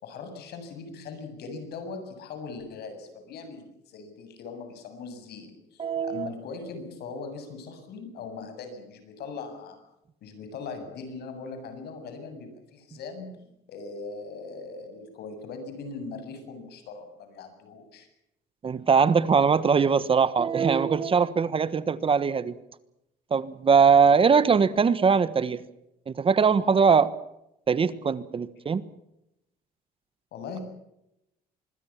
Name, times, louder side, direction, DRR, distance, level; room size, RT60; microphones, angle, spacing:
voice 1, 0.0-9.8 10.2-18.1 30.3-30.6, left 4 dB, 70° left, 7.6 m, -40 dB
voice 2, 5.8-6.3 18.6-22.5 23.3-25.6 26.1-27.1 27.7-28.8, right 6 dB, 30° right, 1.3 m, -21 dB
25.5 x 21.5 x 7.4 m
cardioid pair, 110°, 17 cm